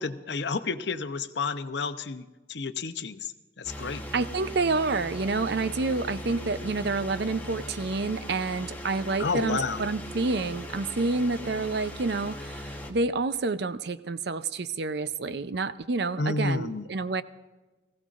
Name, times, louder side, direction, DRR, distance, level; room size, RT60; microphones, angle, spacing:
voice 1, 0.0-2.2 2.5-3.3 3.6-4.0 9.2-9.8 16.2-16.9, left 4 dB, 65° left, 10 dB, 0.7 m, -30 dB
sound 1, 3.6-12.9, equal, 10° left, 1.1 m, -39 dB
voice 2, 4.1-17.2, right 3 dB, 60° right, 13 dB, 0.5 m, -28 dB
20.0 x 16.0 x 2.5 m, 1.2 s
head